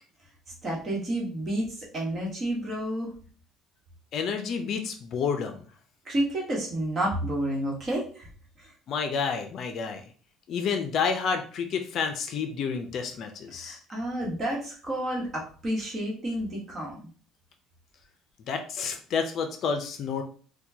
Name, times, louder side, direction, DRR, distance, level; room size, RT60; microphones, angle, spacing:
voice 1, 0.6-1.7 1.9-3.1 6.0-8.3 13.6-17.1, right 1 dB, 30° right, -2 dB, 1.3 m, -30 dB
voice 2, 4.1-5.6 8.9-10.0 10.5-13.8 18.5-20.2, left 6 dB, 50° left, 6 dB, 0.5 m, -29 dB
4.3 x 2.2 x 2.8 m, 0.41 s
cardioid pair, 135°, 0 cm